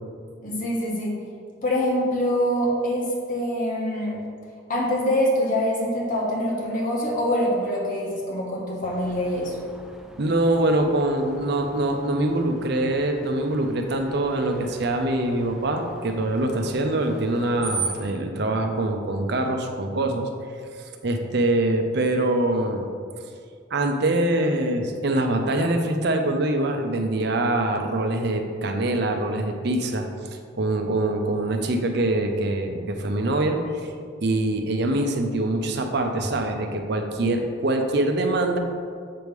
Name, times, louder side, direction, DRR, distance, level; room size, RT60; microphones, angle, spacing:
voice 1, 0.4-1.1 1.6-4.2 4.7-9.6, equal, 45° left, -3 dB, 1.4 m, -24 dB
Screech, 8.8-18.1, right 4 dB, 5° right, 0.3 m, -39 dB
voice 2, 10.2-20.3 21.0-22.9 23.7-30.1 30.6-33.9 34.2-38.6, right 1 dB, 60° right, 4 dB, 0.6 m, -24 dB
7.7 x 3.2 x 5.2 m, 2.2 s
head